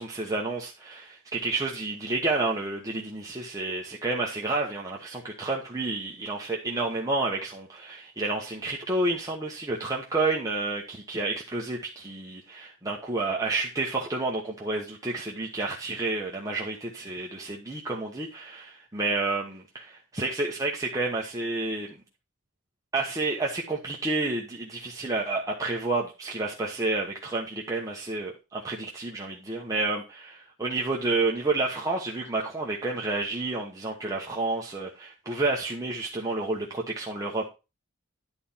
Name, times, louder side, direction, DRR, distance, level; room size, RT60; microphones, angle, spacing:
voice 1, 0.0-21.9 22.9-37.5, right 2 dB, 15° right, 1.1 m, -30 dB
11.0 x 4.3 x 5.6 m
head